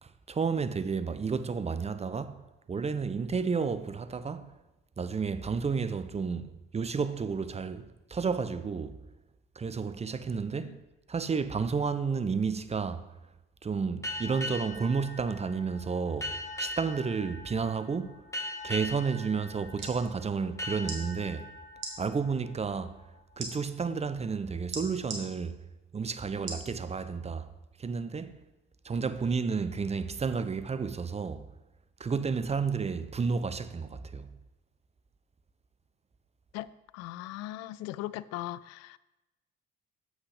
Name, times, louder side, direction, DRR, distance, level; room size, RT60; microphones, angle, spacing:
voice 1, 0.0-2.4 2.7-4.5 5.0-9.0 9.6-10.8 11.1-13.1 13.6-18.2 18.6-21.5 22.0-23.0 23.4-25.6 25.9-27.5 27.8-28.4 28.8-31.5 32.0-34.3, right 5 dB, 20° right, 0.6 m, -31 dB
sound 1, 14.0-23.3, left 1 dB, 10° left, 2.6 m, -41 dB
sound 2, 19.8-20.0 20.8-21.0 21.7-21.9 23.4-23.5 24.7-25.2 26.5-26.7 27.3-27.4, right 4 dB, 55° right, 1.9 m, -37 dB
voice 2, 36.9-39.0, left 15 dB, 60° left, 0.4 m, -38 dB
7.5 x 6.3 x 4.9 m
figure-of-eight pair, 50°, 30 cm